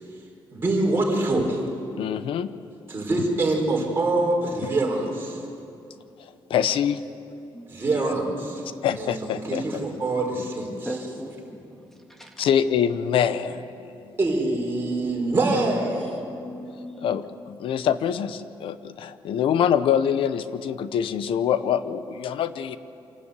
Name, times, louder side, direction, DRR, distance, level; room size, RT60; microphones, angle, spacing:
voice 1, 0.5-1.6 2.9-5.4 7.7-8.6 9.0-9.1 9.4-10.7 14.2-16.2, right 2 dB, 25° right, -2 dB, 4.7 m, -24 dB
voice 2, 2.0-2.5 4.6-4.7 6.5-7.0 7.9-8.1 8.8-9.8 12.4-14.1 17.0-22.8, left 8 dB, 80° left, 13 dB, 0.8 m, -25 dB
voice 3, 10.8-12.5 15.9-17.2, equal, 5° left, 1 dB, 2.2 m, -39 dB
26.0 x 12.0 x 8.4 m, 2.6 s
cardioid pair, 125°, 9 cm